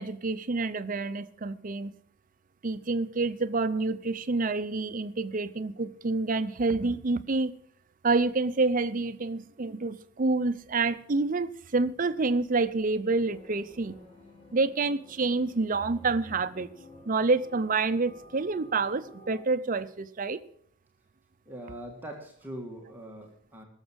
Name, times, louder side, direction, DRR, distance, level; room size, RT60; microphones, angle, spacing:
voice 1, 0.0-1.9 2.6-7.5 8.0-14.0 14.5-16.7 17.1-20.4, right 3 dB, 40° right, 0.6 m, -28 dB
sound 1, 13.1-19.5, left 1 dB, 30° left, 1.9 m, -53 dB
voice 2, 21.5-23.7, right 1 dB, 10° right, 1.7 m, -42 dB
18.0 x 7.2 x 6.3 m
head